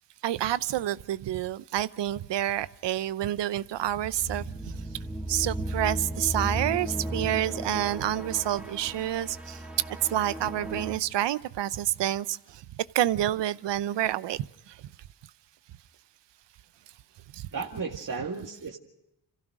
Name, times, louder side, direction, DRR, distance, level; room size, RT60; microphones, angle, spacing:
voice 1, 0.2-4.4 5.3-9.6 10.1-12.4 12.9-14.4, right 12 dB, 75° right, 17 dB, 0.8 m, -28 dB
sound 1, 3.9-11.0, right 1 dB, ahead, 2.0 m, -35 dB
voice 2, 17.5-18.8, right 4 dB, 45° right, 0 dB, 2.1 m, -34 dB
27.0 x 15.5 x 6.1 m, 0.89 s
cardioid pair, 60°, 43 cm